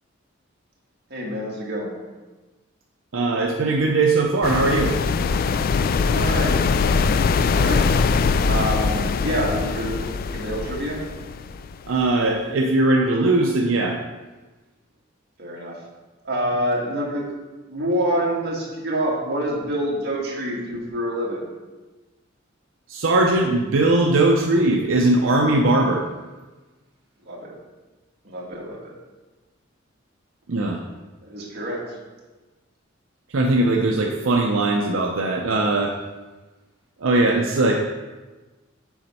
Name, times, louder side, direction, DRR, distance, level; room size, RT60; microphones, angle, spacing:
voice 1, 1.1-2.0 6.0-6.6 7.4-7.9 8.4-11.0 15.4-15.8 16.2-17.3 17.7-21.4 27.3-27.5 28.2-28.9 31.2-31.8, equal, 55° right, -3 dB, 1.8 m, -27 dB
voice 2, 3.1-4.9 11.9-14.0 22.9-26.0 30.5-30.8 33.3-35.9 37.0-37.8, right 2 dB, 90° right, 0 dB, 0.7 m, -20 dB
sound 1, 4.4-12.1, left 5 dB, 50° left, 0.3 m, -22 dB
7.1 x 4.2 x 5.4 m, 1.2 s
head